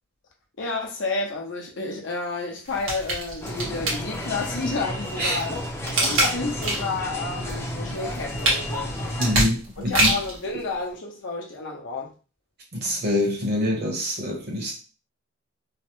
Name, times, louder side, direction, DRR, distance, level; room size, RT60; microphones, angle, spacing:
voice 1, 0.6-5.6 6.0-9.2 9.9-12.1, left 3 dB, 65° left, 0 dB, 0.8 m, -30 dB
sound 1, 2.7-4.5 5.0-7.0 7.4-10.4 10.9-11.0, right 1 dB, 75° right, 1.4 m, -25 dB
sound 2, 3.4-9.3, left 1 dB, 15° left, 0.6 m, -32 dB
voice 2, 9.2-10.1 12.7-14.7, left 1 dB, 55° right, -1 dB, 1.1 m, -25 dB
3.2 x 2.1 x 3.0 m, 0.34 s
head